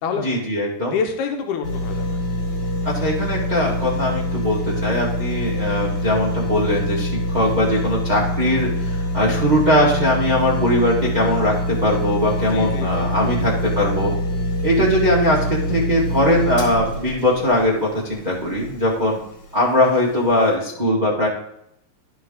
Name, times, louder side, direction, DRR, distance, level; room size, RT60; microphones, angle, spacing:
voice 1, 0.1-1.0 2.8-14.1 14.6-19.2 19.5-21.3, left 1 dB, 60° right, -6 dB, 0.4 m, -20 dB
voice 2, 0.9-2.2 12.5-13.3, left 6 dB, 90° left, 4 dB, 2.3 m, -27 dB
sound 1, 1.6-18.8 19.3-19.4, left 1 dB, 50° left, 2.5 m, -25 dB
11.5 x 5.1 x 3.7 m, 0.75 s
omnidirectional pair, 3.4 m